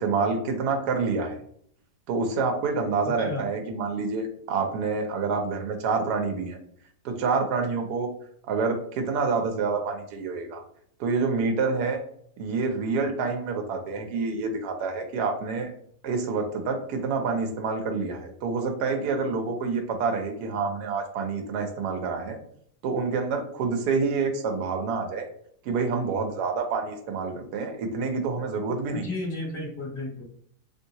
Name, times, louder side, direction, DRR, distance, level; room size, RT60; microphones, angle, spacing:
voice 1, 0.0-1.4 2.1-6.6 7.0-8.1 8.5-10.6 11.0-12.0 12.4-15.7 16.0-22.4 22.8-25.3 25.6-29.1, right 4 dB, 85° right, 4 dB, 1.2 m, -27 dB
voice 2, 29.0-30.2, left 2 dB, 25° left, -2 dB, 0.7 m, -33 dB
3.1 x 2.7 x 2.7 m, 0.64 s
omnidirectional pair, 1.7 m